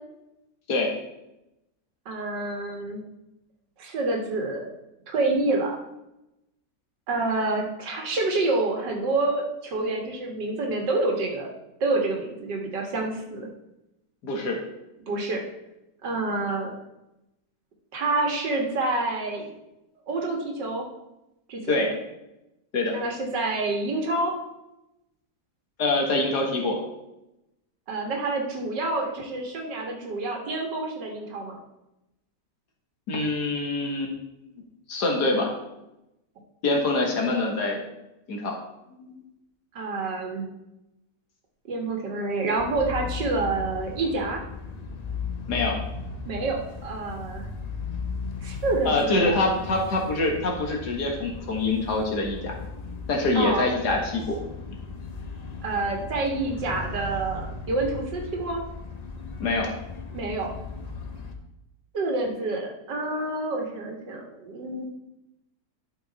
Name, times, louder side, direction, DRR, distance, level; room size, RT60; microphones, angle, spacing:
voice 1, 2.1-3.0 3.8-4.7 5.1-5.8 7.1-11.5 11.8-13.5 15.0-15.4 16.0-16.7 17.9-19.5 20.1-20.9 21.5-21.8 22.9-24.3 27.9-31.6 39.7-40.5 41.7-44.4 46.3-47.5 48.4-49.4 53.3-53.7 55.6-58.6 60.1-60.5 61.9-64.8, right 2 dB, 80° right, 1 dB, 2.2 m, -28 dB
voice 2, 14.2-14.6 21.7-21.9 22.7-22.9 25.8-26.8 33.1-34.1 34.9-35.5 36.6-37.8 38.3-38.5 39.1-39.2 45.5-45.8 48.9-52.5 53.1-54.4 59.4-59.7, left 2 dB, 70° left, 0 dB, 2.2 m, -25 dB
sound 1, 42.6-61.3, left 4 dB, 50° left, 0.5 m, -37 dB
11.5 x 5.5 x 4.1 m, 0.91 s
omnidirectional pair, 1.9 m